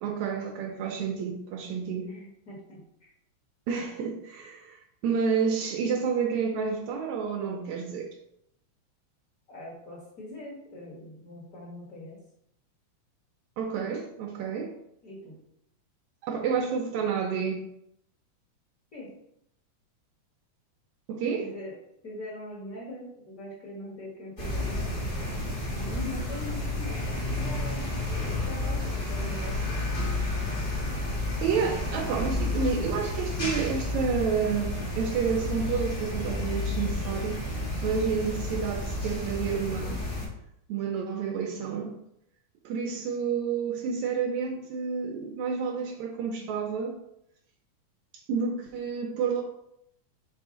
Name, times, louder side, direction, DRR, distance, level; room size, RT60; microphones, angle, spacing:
voice 1, 0.0-2.1 3.7-8.1 13.6-14.7 16.2-17.6 21.1-21.5 31.4-37.4 37.8-40.0 40.7-41.9 42.7-47.0 48.3-49.4, right 6 dB, 80° right, 1 dB, 2.0 m, -29 dB
voice 2, 2.0-3.1 9.5-12.2 13.7-13.9 15.0-15.4 18.9-19.1 21.4-21.8 22.0-25.1 25.7-27.9 28.4-29.8 30.3-30.5, left 1 dB, 40° left, -4 dB, 1.4 m, -42 dB
sound 1, 24.4-40.3, left 2 dB, 60° left, 0.5 m, -31 dB
5.5 x 4.7 x 3.8 m, 0.76 s
omnidirectional pair, 3.4 m